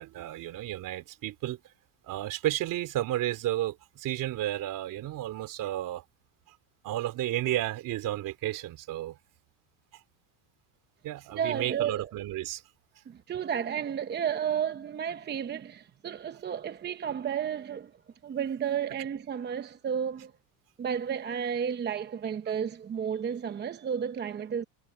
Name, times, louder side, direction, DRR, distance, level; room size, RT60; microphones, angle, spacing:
voice 1, 0.0-1.6 2.0-6.0 6.8-9.2 11.0-12.6, right 14 dB, 50° right, 3.0 m, -32 dB
voice 2, 11.3-12.1 13.1-17.9 18.2-20.3 20.8-24.6, right 8 dB, 25° right, 0.9 m, -32 dB
cardioid pair, 135°, 41 cm